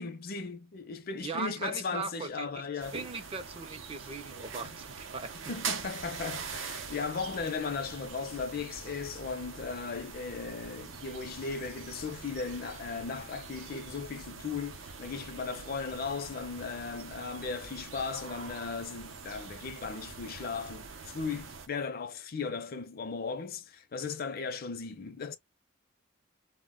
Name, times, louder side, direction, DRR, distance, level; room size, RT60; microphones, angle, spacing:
voice 1, 0.0-3.0 5.5-25.4, left 5 dB, 50° left, 0.5 m, -37 dB
voice 2, 1.2-2.6 2.9-5.4, right 4 dB, 30° right, 0.4 m, -39 dB
sound 1, 2.8-21.7, right 5 dB, 80° right, 0.6 m, -43 dB
2.1 x 2.1 x 3.6 m
head